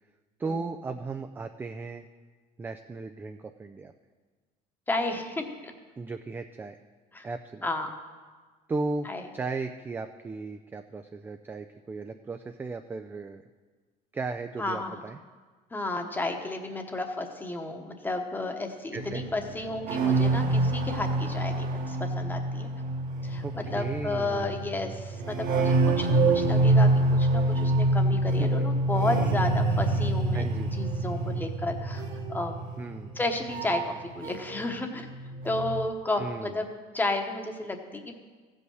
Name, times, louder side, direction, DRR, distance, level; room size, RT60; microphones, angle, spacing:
voice 1, 0.4-2.1 2.6-3.9 6.0-6.8 7.2-7.7 8.7-13.4 14.1-15.2 18.9-19.2 23.4-24.6 28.4-28.5 30.3-30.7 32.8-33.1 36.2-36.6, right 3 dB, 10° right, 7 dB, 0.3 m, -36 dB
voice 2, 4.9-5.7 7.1-7.3 7.6-7.9 9.0-9.2 14.6-15.0 15.7-22.7 23.2-30.5 30.8-32.0 32.3-32.6 33.2-35.1 35.4-36.7 36.9-38.2, left 2 dB, 10° left, 4 dB, 1.0 m, -32 dB
sound 1, 18.9-34.7 35.0-35.8, right 2 dB, 60° right, 1.5 m, -26 dB
15.0 x 5.4 x 6.3 m, 1.4 s
cardioid pair, 130°, 16 cm